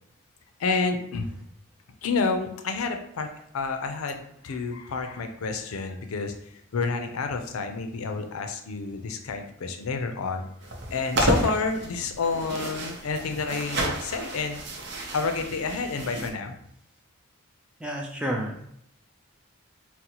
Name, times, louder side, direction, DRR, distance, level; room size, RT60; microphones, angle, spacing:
voice 1, 0.6-1.3 2.0-3.3 3.5-10.4 10.9-14.6 15.1-16.6, left 4 dB, 90° left, 6 dB, 0.5 m, -29 dB
sound 1, 10.6-16.3, right 1 dB, 55° right, 0.6 m, -31 dB
voice 2, 17.8-18.7, equal, 5° right, -1 dB, 0.3 m, -30 dB
3.9 x 2.1 x 2.8 m, 0.72 s
head